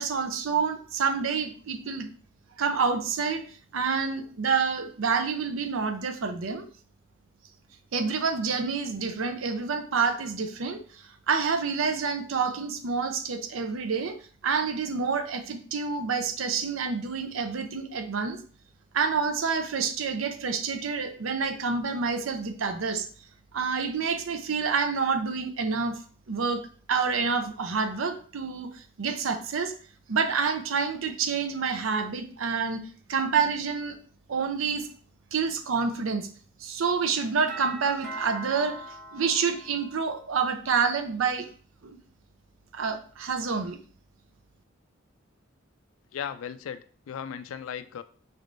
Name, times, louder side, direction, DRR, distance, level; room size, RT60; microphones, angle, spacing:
voice 1, 0.0-2.1 2.6-3.4 3.7-6.7 7.9-14.2 14.4-18.4 18.9-23.1 23.5-26.0 26.3-26.6 26.9-29.7 30.1-32.8 33.1-34.0 34.3-34.9 35.3-36.3 36.6-41.5 41.8-42.0 42.7-43.8, right 5 dB, 80° right, 7 dB, 0.6 m, -28 dB
Doorbell, 37.5-40.3, right 2 dB, 5° left, 1.1 m, -41 dB
voice 2, 46.1-48.0, left 8 dB, 85° left, 12 dB, 0.3 m, -36 dB
4.2 x 3.4 x 2.5 m, 0.43 s
head